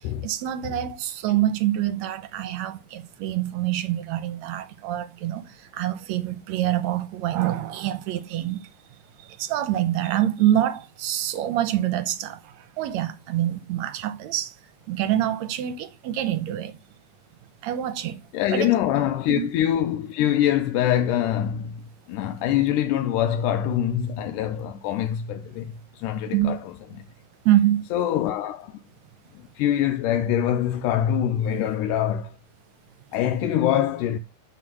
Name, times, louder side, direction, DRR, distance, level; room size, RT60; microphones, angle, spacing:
voice 1, 0.2-8.7 9.2-14.5 14.9-16.8 17.6-18.2 18.5-18.7 19.3-19.5 26.3-26.6 27.5-27.8, right 12 dB, 70° right, 1.9 m, -26 dB
voice 2, 18.3-26.7 27.9-28.8 29.6-32.3 33.1-34.2, left 11 dB, 85° left, 2.2 m, -24 dB
11.0 x 4.1 x 6.1 m
omnidirectional pair, 3.7 m